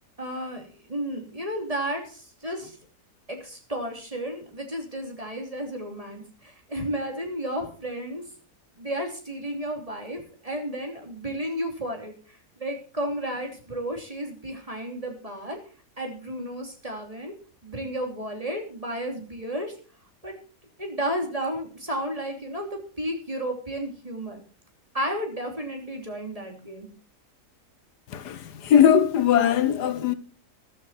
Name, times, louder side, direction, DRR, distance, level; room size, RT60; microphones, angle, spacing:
voice 1, 0.2-2.7 3.3-8.2 8.8-12.1 12.6-15.6 16.0-17.3 17.6-19.7 20.2-20.3 20.8-24.4 24.9-26.9, equal, 20° right, 3.3 m, -32 dB
voice 2, 28.1-30.1, left 9 dB, 85° left, 1.6 m, -20 dB
14.0 x 12.0 x 4.3 m
omnidirectional pair, 1.7 m